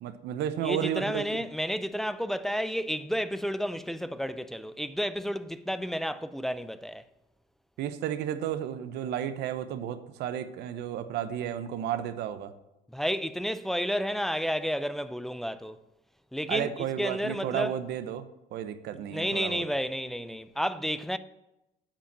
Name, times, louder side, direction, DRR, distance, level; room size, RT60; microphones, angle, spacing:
voice 1, 0.0-1.4 7.8-12.5 16.5-19.6, right 10 dB, 80° right, 0.8 m, -33 dB
voice 2, 0.6-7.0 12.9-15.8 16.3-16.7 17.0-17.7 19.1-21.2, equal, ahead, 0.4 m, -31 dB
8.7 x 5.1 x 7.3 m
cardioid pair, 110°, 17 cm